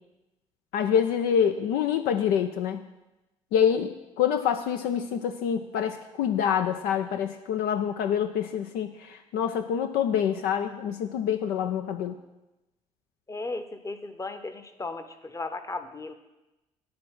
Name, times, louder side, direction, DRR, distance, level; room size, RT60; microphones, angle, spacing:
voice 1, 0.7-2.8 3.5-12.2, left 8 dB, 60° left, 6 dB, 0.5 m, -26 dB
voice 2, 13.3-16.1, left 3 dB, 20° left, 9 dB, 0.9 m, -36 dB
9.7 x 4.2 x 7.6 m, 1.0 s
figure-of-eight pair, 45°, 18 cm